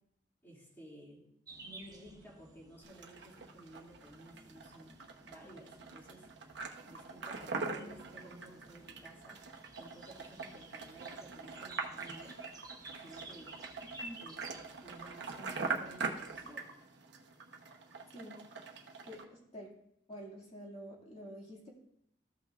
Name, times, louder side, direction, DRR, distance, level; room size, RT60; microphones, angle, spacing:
voice 1, 0.4-1.2 1.6-6.3 6.8-9.4 9.8-12.3 13.0-13.5 14.2-14.4 14.8-16.7, right 1 dB, 10° left, -5 dB, 2.4 m, -54 dB
sound 1, 1.5-16.5, right 2 dB, 20° right, 0.9 m, -55 dB
sound 2, 2.8-19.2, right 4 dB, 60° right, 1.0 m, -43 dB
voice 2, 18.1-18.4 19.1-19.7 20.1-21.7, equal, 35° left, -3 dB, 2.2 m, -48 dB
14.5 x 5.8 x 2.4 m, 0.74 s
head